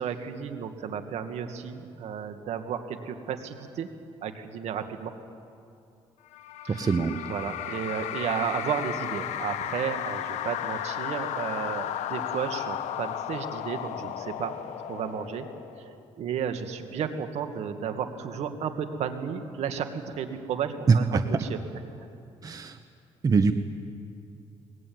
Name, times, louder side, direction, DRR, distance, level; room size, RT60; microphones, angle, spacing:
voice 1, 0.0-3.9 4.2-5.1 6.6-6.9 7.3-14.5 14.9-15.5 15.7-21.6 21.9-22.1, right 7 dB, 70° right, 7 dB, 2.1 m, -33 dB
sound 1, 6.3-16.0, left 11 dB, 80° left, 1.1 m, -34 dB
voice 2, 6.7-7.2 20.9-21.0 22.4-22.8 23.2-23.5, right 5 dB, 30° right, 8 dB, 1.1 m, -22 dB
23.0 x 20.0 x 9.5 m, 2.5 s
cardioid pair, 105°, 12 cm